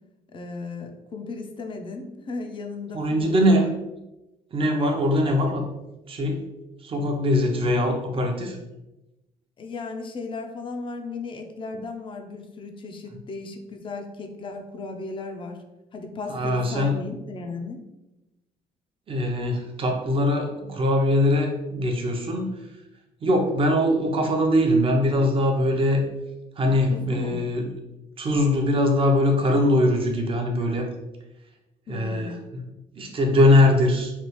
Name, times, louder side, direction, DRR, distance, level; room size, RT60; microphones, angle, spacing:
voice 1, 0.3-3.7 7.5-7.6 9.6-15.6 15.9-17.8 26.9-27.4 31.9-32.4, left 3 dB, 35° left, 5 dB, 0.5 m, -35 dB
voice 2, 2.9-3.6 4.5-5.6 6.1-6.4 6.8-8.6 16.3-16.9 19.1-22.5 23.2-26.0 26.6-27.7 28.2-30.9 31.9-32.7 33.0-34.1, left 1 dB, 35° right, 3 dB, 0.6 m, -22 dB
3.3 x 2.3 x 3.0 m, 0.98 s
cardioid pair, 110°, 15 cm